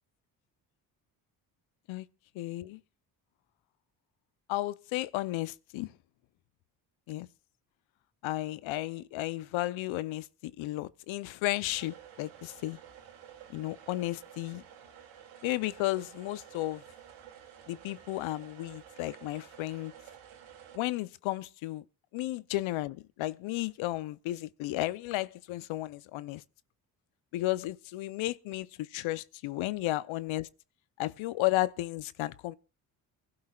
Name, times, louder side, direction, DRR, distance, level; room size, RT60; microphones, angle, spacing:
voice 1, 2.3-2.8 4.5-5.9 7.1-7.3 8.2-12.8 13.5-14.6 15.4-16.8 17.7-19.9 20.7-21.8 22.1-26.4 27.3-30.5 31.0-32.6, left 17 dB, 70° left, 0.8 m, -33 dB
sound 1, 11.7-20.8, right 9 dB, 80° right, 2.7 m, -52 dB
23.5 x 12.0 x 2.4 m
hypercardioid pair, 55°, 49 cm